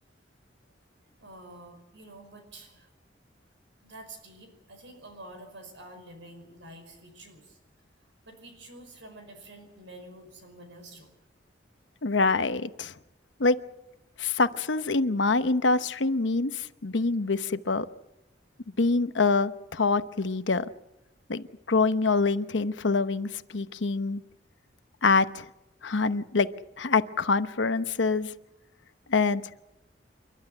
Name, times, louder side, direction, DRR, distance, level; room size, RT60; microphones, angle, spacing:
voice 1, 1.2-2.9 3.8-7.6 8.3-11.1, right 1 dB, 90° right, 6 dB, 5.3 m, -48 dB
voice 2, 12.0-12.9 13.4-13.6 14.2-17.9 18.8-20.7 21.3-24.2 25.0-25.4 25.8-26.5 26.8-28.3 29.1-29.5, left 3 dB, 85° left, 12 dB, 1.0 m, -25 dB
29.0 x 12.0 x 9.9 m, 0.98 s
head